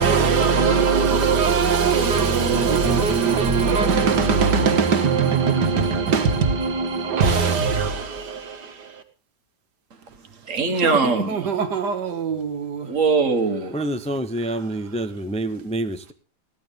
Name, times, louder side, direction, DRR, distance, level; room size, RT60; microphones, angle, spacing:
voice 1, 0.0-9.0 10.8-12.9, right 5 dB, 85° right, 2.1 m, -21 dB
voice 2, 10.4-11.6 12.8-13.7, right 4 dB, 50° right, 1.8 m, -22 dB
voice 3, 13.7-16.1, right 1 dB, 5° left, 0.6 m, -27 dB
16.0 x 11.5 x 5.2 m
omnidirectional pair, 1.8 m